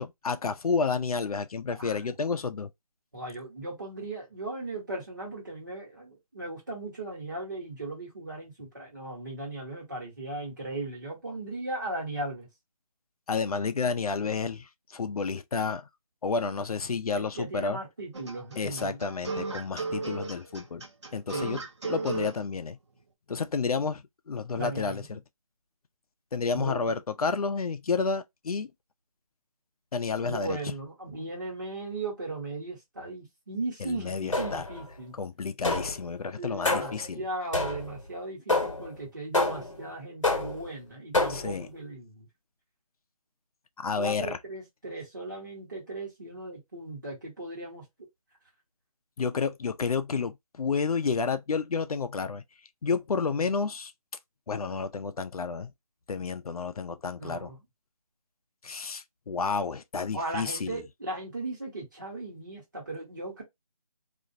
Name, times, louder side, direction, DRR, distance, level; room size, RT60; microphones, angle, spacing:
voice 1, 0.0-2.7 13.3-15.9 16.2-17.8 18.6-20.8 21.1-22.8 23.3-25.2 26.3-28.7 29.9-30.6 33.8-34.7 35.2-37.2 41.3-41.7 43.8-44.4 49.2-52.4 52.8-53.9 54.5-55.7 56.1-57.5 58.6-60.8, left 5 dB, 75° left, 0.4 m, -30 dB
voice 2, 3.1-12.5 17.1-19.0 21.3-21.7 24.5-25.2 26.5-27.0 30.2-35.1 36.4-42.3 44.0-47.8 57.2-57.6 60.1-63.4, right 2 dB, 30° right, 1.1 m, -37 dB
sound 1, 18.1-22.4, right 3 dB, 50° right, 0.6 m, -34 dB
sound 2, 34.3-34.8 35.6-36.1 36.6-37.1 37.5-38.0 38.5-38.9 39.3-39.8 40.2-40.7 41.1-41.6, left 2 dB, 55° left, 1.0 m, -28 dB
2.4 x 2.0 x 2.5 m
figure-of-eight pair, 180°, 19 cm